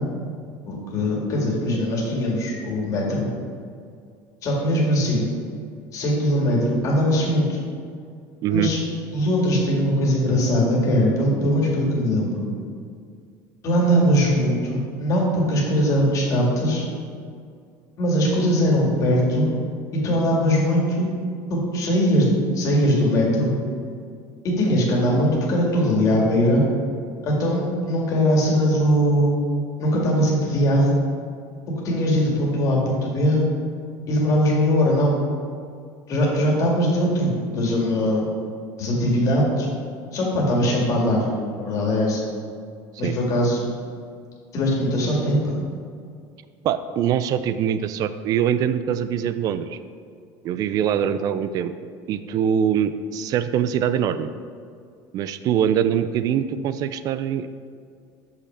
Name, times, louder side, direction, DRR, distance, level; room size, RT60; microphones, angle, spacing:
voice 1, 0.7-3.3 4.4-5.3 5.9-7.6 8.5-8.8 9.1-12.5 13.6-16.8 18.0-19.5 20.0-21.1 21.5-23.5 24.4-26.7 27.2-29.3 29.8-31.0 31.8-33.4 34.1-35.2 36.1-38.2 38.8-39.7 40.1-41.3 41.6-42.2 43.0-43.6 44.5-45.5, equal, 40° left, -3 dB, 1.9 m, -21 dB
voice 2, 46.6-49.8 50.4-51.7 52.1-54.3 55.1-57.5, right 9 dB, 45° right, 12 dB, 0.4 m, -23 dB
6.4 x 5.7 x 4.3 m, 2.3 s
cardioid pair, 135°, 8 cm